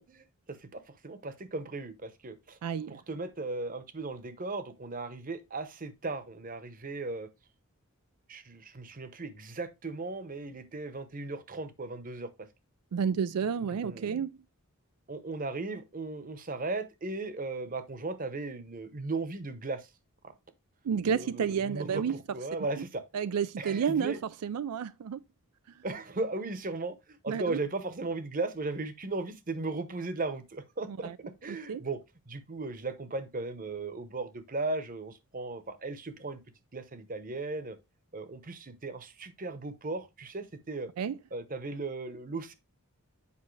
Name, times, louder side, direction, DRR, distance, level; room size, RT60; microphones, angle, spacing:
voice 1, 0.0-2.6 2.9-7.3 8.3-12.3 13.8-14.1 15.1-19.9 20.2-20.3 21.0-23.0 23.6-24.2 25.8-31.1 31.4-32.0 32.3-36.4 36.7-37.8 38.1-40.9 41.3-42.5, right 3 dB, 35° right, 0.8 m, -37 dB
voice 2, 2.6-3.0 12.9-14.3 20.8-22.2 23.1-25.2 27.3-27.6 31.0-31.2 31.5-31.8 41.0-41.2, right 7 dB, 90° right, 0.4 m, -30 dB
8.4 x 5.3 x 3.2 m
head